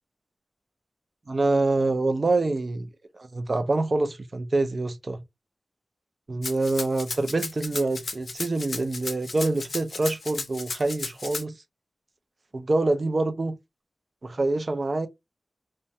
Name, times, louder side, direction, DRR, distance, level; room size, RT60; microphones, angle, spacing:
voice 1, 1.3-2.9 3.1-5.2 6.3-11.6 12.5-13.6 14.2-15.1, right 2 dB, 45° right, 0.4 m, -26 dB
Rattle (instrument), 6.4-11.4, left 3 dB, 70° left, 0.5 m, -34 dB
2.3 x 2.1 x 2.6 m
wide cardioid pair, 110°, 0 cm